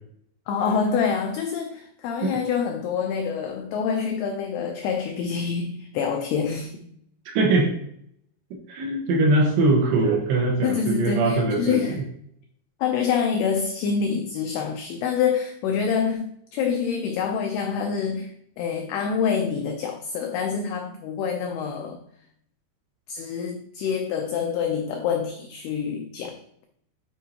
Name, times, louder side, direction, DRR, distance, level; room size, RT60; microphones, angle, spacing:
voice 1, 0.5-6.9 10.6-12.0 12.8-22.0 23.1-26.6, left 6 dB, 90° left, 2.2 m, -26 dB
voice 2, 7.3-7.7 8.7-12.0, right 2 dB, 75° right, 3.1 m, -22 dB
9.3 x 4.4 x 2.8 m
omnidirectional pair, 5.2 m